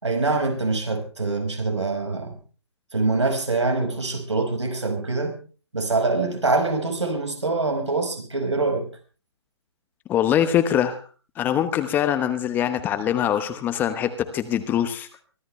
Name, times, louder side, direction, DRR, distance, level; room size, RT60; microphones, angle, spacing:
voice 1, 0.0-2.4 2.9-5.4 5.7-8.9, right 3 dB, 80° right, 4 dB, 5.3 m, -24 dB
voice 2, 10.1-11.0 11.4-15.1, left 10 dB, 15° left, 10 dB, 1.0 m, -23 dB
24.0 x 14.0 x 3.3 m, 0.37 s
figure-of-eight pair, 140°, 15 cm